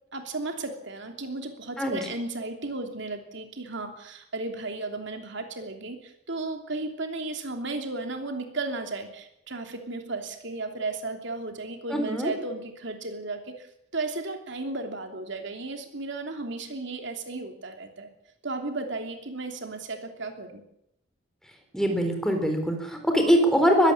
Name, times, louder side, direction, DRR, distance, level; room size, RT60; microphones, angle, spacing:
voice 1, 0.1-13.7 13.9-18.1 18.4-20.6, right 2 dB, 60° right, 5 dB, 3.0 m, -34 dB
voice 2, 11.9-12.3 21.7-23.9, equal, 5° left, 4 dB, 4.0 m, -22 dB
21.0 x 16.0 x 8.6 m, 0.77 s
head